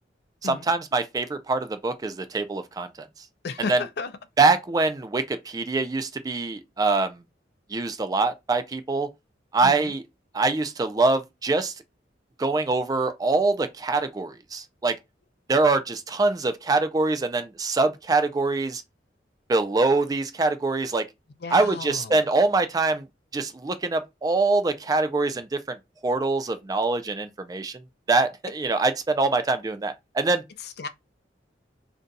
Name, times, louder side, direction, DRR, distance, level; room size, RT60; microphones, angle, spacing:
voice 1, 0.4-3.1 3.7-3.8 4.4-7.2 7.7-9.1 9.5-10.0 10.3-11.7 12.4-14.9 15.5-18.8 19.5-21.1 21.5-23.1 23.3-25.8 26.0-27.8 28.1-30.4, right 3 dB, 20° right, 0.3 m, -24 dB
voice 2, 3.4-4.1 9.6-9.9 21.4-22.3 30.6-30.9, left 4 dB, 60° left, 0.4 m, -34 dB
2.5 x 2.3 x 3.9 m
head